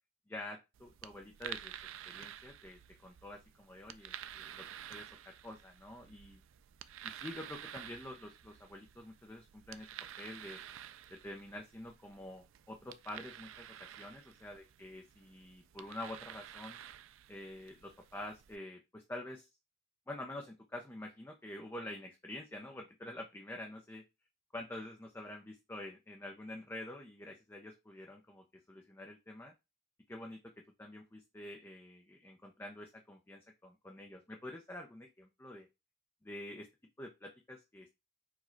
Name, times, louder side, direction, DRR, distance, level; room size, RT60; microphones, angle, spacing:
voice 1, 0.3-1.8 2.1-6.4 7.0-9.9 10.2-10.6 11.1-16.8 17.3-19.5 20.1-24.0 24.5-29.5 30.1-30.4 30.8-35.7 36.2-36.7 37.0-37.9, left 1 dB, 10° left, 2 dB, 0.5 m, -47 dB
sound 1, 0.7-18.6, right 10 dB, 75° right, 0.4 m, -51 dB
4.7 x 2.3 x 4.3 m, 0.24 s
head